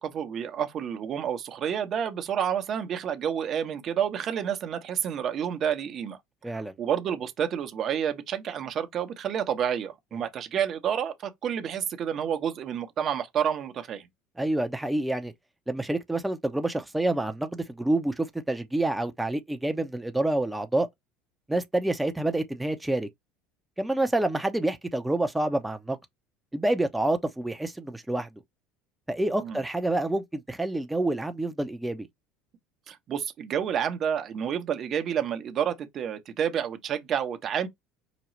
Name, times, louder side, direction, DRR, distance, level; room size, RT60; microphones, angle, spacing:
voice 1, 0.0-6.2 6.5-14.0 29.4-29.6 32.9-37.7, right 8 dB, 45° right, 1.0 m, -29 dB
voice 2, 14.4-15.3 15.7-20.9 21.5-23.1 23.8-26.0 26.5-28.3 29.1-32.1, right 2 dB, 5° right, 0.7 m, -28 dB
5.0 x 2.3 x 3.1 m
hypercardioid pair, 80°, 0 cm